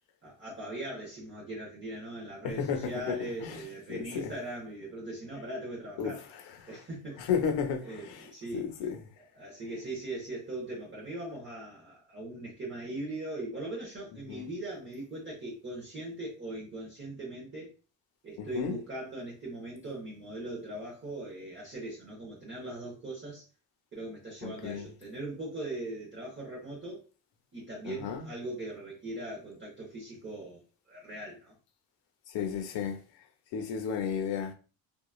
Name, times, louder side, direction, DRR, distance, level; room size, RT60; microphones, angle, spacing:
voice 1, 0.2-6.2 6.7-7.3 7.8-8.7 9.3-17.7 18.2-23.4 23.9-27.0 27.5-30.6 30.9-31.5, right 1 dB, 25° right, 0.9 m, -40 dB
voice 2, 2.4-3.6 3.9-4.3 6.0-6.4 7.2-8.3 8.5-9.0 14.3-14.5 18.4-18.8 24.4-24.9 27.8-28.3 32.3-33.0 33.5-34.5, left 7 dB, 65° left, 0.8 m, -33 dB
3.0 x 2.4 x 2.3 m
cardioid pair, 120°, 48 cm